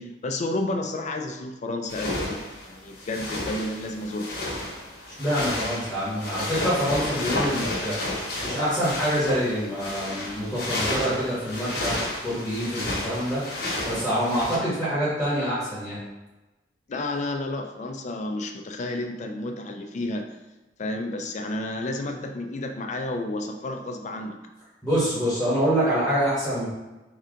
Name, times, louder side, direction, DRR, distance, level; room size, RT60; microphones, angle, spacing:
voice 1, 0.0-2.2 2.7-4.3 16.9-20.3 20.8-24.4, left 2 dB, 40° left, 5 dB, 0.4 m, -31 dB
sound 1, 1.9-14.6, left 1 dB, 65° left, 1.0 m, -31 dB
voice 2, 5.2-8.0 8.4-12.0 12.2-16.0 24.8-26.7, equal, 5° left, -10 dB, 1.2 m, -26 dB
3.3 x 2.8 x 3.7 m, 1.1 s
head